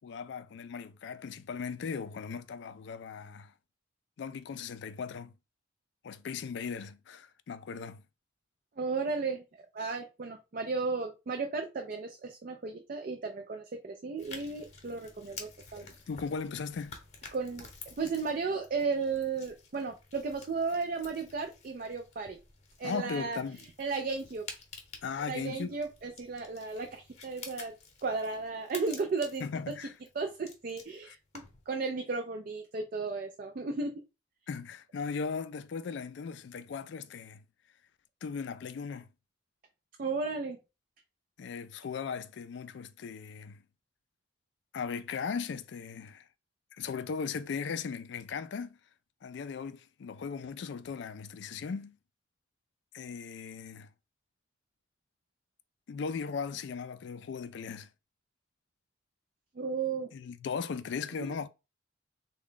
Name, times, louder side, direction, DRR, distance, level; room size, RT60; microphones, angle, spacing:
voice 1, 0.0-3.5 4.2-5.3 6.0-8.0 15.8-17.0 22.8-23.6 25.0-25.8 29.4-29.9 31.1-31.2 34.5-37.4 38.2-39.1 41.4-43.6 44.7-46.3 46.7-48.8 49.2-52.0 52.9-53.9 55.9-57.9 60.1-61.5, left 5 dB, 60° left, 0.3 m, -38 dB
voice 2, 8.8-9.4 9.7-15.9 17.3-22.4 22.8-23.4 23.8-24.5 25.3-27.7 28.0-29.4 30.2-33.9 40.0-40.6 59.6-60.1 61.2-61.3, right 4 dB, 45° right, 0.4 m, -34 dB
sound 1, 14.2-31.7, left 4 dB, 35° left, 0.8 m, -51 dB
3.6 x 2.2 x 3.6 m
head